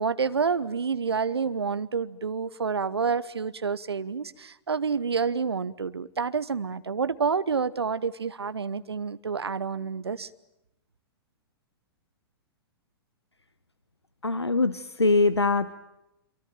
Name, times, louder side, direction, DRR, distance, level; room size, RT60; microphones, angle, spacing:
voice 1, 0.0-10.3, right 5 dB, 75° right, 15 dB, 1.0 m, -28 dB
voice 2, 14.2-15.7, left 3 dB, 90° left, 14 dB, 1.0 m, -23 dB
27.0 x 24.0 x 9.1 m, 0.90 s
figure-of-eight pair, 110°, 13 cm